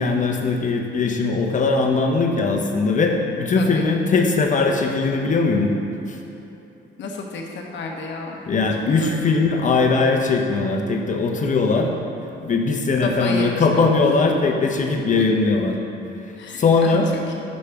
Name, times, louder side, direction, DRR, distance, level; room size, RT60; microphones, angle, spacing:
voice 1, 0.0-5.7 8.5-11.9 12.4-15.8 16.6-17.1, left 4 dB, 40° left, 2 dB, 0.7 m, -20 dB
voice 2, 3.5-3.9 7.0-8.4 8.9-9.4 13.0-13.9 16.4-17.0 17.4-17.5, left 3 dB, 65° left, 1 dB, 0.9 m, -32 dB
6.3 x 3.3 x 5.8 m, 2.9 s
cardioid pair, 90°, 20 cm